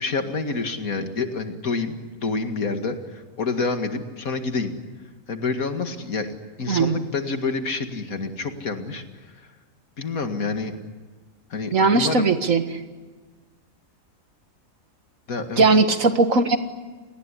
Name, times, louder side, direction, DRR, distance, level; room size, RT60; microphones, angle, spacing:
voice 1, 0.0-4.7 5.3-9.0 10.0-10.7 11.5-12.3 15.3-15.7, left 4 dB, 85° left, 6 dB, 2.5 m, -28 dB
voice 2, 6.7-7.0 11.7-12.6 15.6-16.6, right 3 dB, 70° right, 8 dB, 2.1 m, -18 dB
28.0 x 19.5 x 10.0 m, 1.4 s
omnidirectional pair, 1.5 m